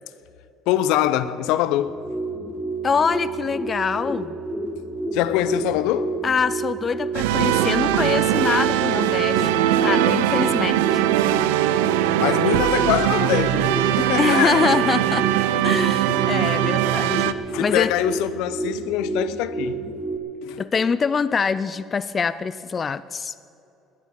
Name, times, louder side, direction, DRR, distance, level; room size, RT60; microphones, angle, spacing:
voice 1, 0.7-2.0 5.1-6.2 7.2-7.4 12.2-14.7 17.5-19.9 20.4-20.6, left 12 dB, 75° left, 0.7 m, -24 dB
sound 1, 1.8-20.2, right 2 dB, 10° left, 1.5 m, -30 dB
voice 2, 2.8-4.4 6.2-11.0 14.2-15.3 15.6-17.9 20.6-23.3, left 5 dB, 35° left, 0.4 m, -24 dB
sound 2, 7.1-17.3, right 13 dB, 90° right, 0.5 m, -21 dB
20.0 x 7.3 x 8.4 m
supercardioid pair, 85°, 0 cm